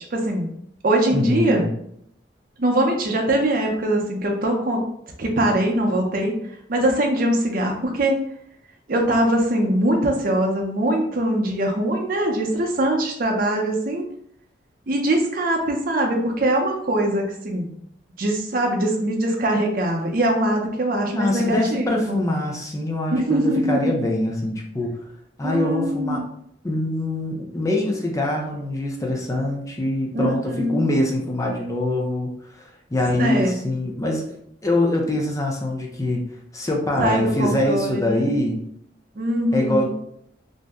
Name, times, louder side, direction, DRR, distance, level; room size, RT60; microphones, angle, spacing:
voice 1, 0.1-0.5 0.8-1.7 2.6-4.8 5.2-6.4 6.7-8.2 8.9-14.0 14.9-17.7 18.2-22.2 23.1-24.0 25.4-26.3 30.1-30.9 33.1-33.6 37.0-38.3 39.2-39.9, right 1 dB, 50° right, 1 dB, 0.6 m, -22 dB
voice 2, 1.1-1.7 21.1-25.0 25.4-26.2 26.6-32.3 32.6-34.4 34.6-38.6 39.5-39.9, left 1 dB, 15° left, 0 dB, 0.5 m, -24 dB
2.6 x 2.1 x 3.5 m, 0.70 s
head